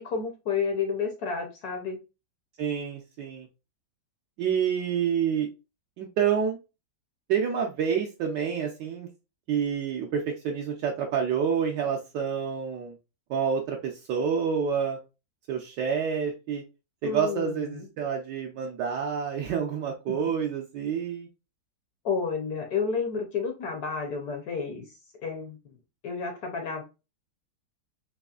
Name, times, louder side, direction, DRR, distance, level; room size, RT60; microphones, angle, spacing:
voice 1, 0.0-2.0 17.0-17.9 20.1-20.2 22.0-24.9 25.2-25.6 26.0-26.8, left 5 dB, 65° left, 4 dB, 1.1 m, -30 dB
voice 2, 2.6-3.5 4.4-5.5 6.0-6.6 7.3-9.1 9.5-12.9 13.3-15.0 15.5-16.6 17.0-21.3, right 7 dB, 70° right, 1 dB, 1.1 m, -28 dB
4.1 x 3.1 x 2.3 m, 0.28 s
omnidirectional pair, 2.1 m